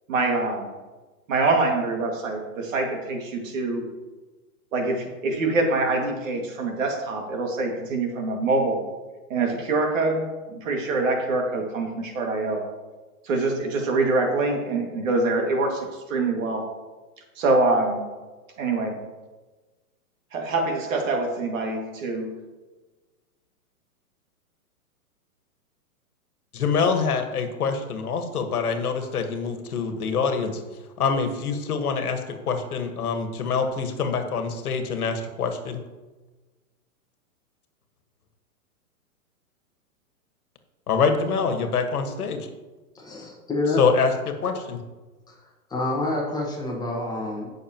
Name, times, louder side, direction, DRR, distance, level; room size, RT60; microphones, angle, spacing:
voice 1, 0.1-0.7 1.3-3.8 4.7-8.8 9.3-12.7 13.2-16.7 17.4-18.0 18.6-19.0 20.3-22.3, right 3 dB, 60° right, 1 dB, 2.2 m, -25 dB
voice 2, 26.5-30.6 31.0-32.2 32.5-35.8 40.9-42.5 43.8-44.8, left 5 dB, 75° left, 6 dB, 1.5 m, -25 dB
voice 3, 42.9-43.8 45.7-47.5, left 2 dB, 10° left, -2 dB, 1.4 m, -27 dB
16.5 x 6.4 x 3.0 m, 1.2 s
hypercardioid pair, 145°, 45 cm